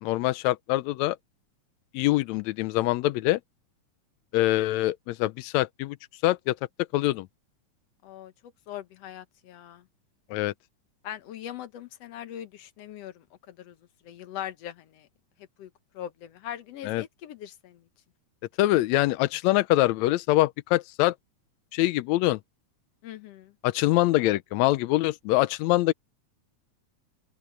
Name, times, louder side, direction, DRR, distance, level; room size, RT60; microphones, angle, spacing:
voice 1, 0.0-1.2 1.9-3.4 4.3-6.0 6.2-6.6 6.9-7.3 10.3-10.5 16.8-17.0 18.6-21.1 21.7-22.4 23.6-25.9, left 17 dB, 80° left, 1.7 m, -24 dB
voice 2, 8.0-9.8 11.0-13.8 14.0-15.1 15.4-17.8 23.0-23.5, left 11 dB, 65° left, 1.8 m, -41 dB
open air
omnidirectional pair, 3.6 m